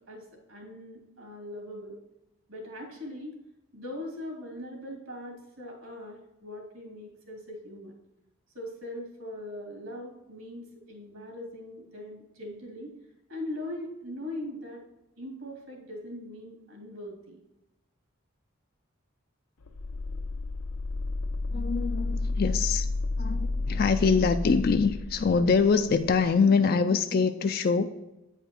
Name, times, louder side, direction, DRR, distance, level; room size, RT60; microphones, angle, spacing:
voice 1, 0.1-2.0 2.5-3.3 3.7-7.9 8.5-12.9 13.3-14.8 15.2-17.4, left 1 dB, 65° right, 0 dB, 2.3 m, -40 dB
sound 1, 19.6-26.3, left 2 dB, 90° left, 0.7 m, -31 dB
voice 2, 21.5-22.9 23.2-27.9, left 5 dB, 45° left, 8 dB, 0.3 m, -24 dB
9.0 x 4.9 x 4.3 m, 0.94 s
head